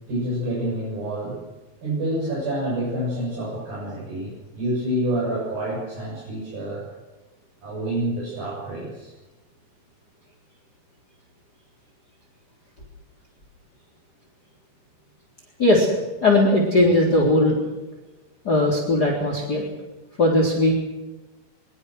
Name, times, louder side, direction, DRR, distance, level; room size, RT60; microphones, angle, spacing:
voice 1, 0.1-1.4 1.8-6.8 7.6-9.1, right 1 dB, 65° right, -5 dB, 9.2 m, -28 dB
voice 2, 16.2-17.6 18.4-19.6 20.2-20.7, left 1 dB, 25° left, 0 dB, 4.0 m, -18 dB
23.5 x 22.5 x 6.4 m, 1.1 s
omnidirectional pair, 4.4 m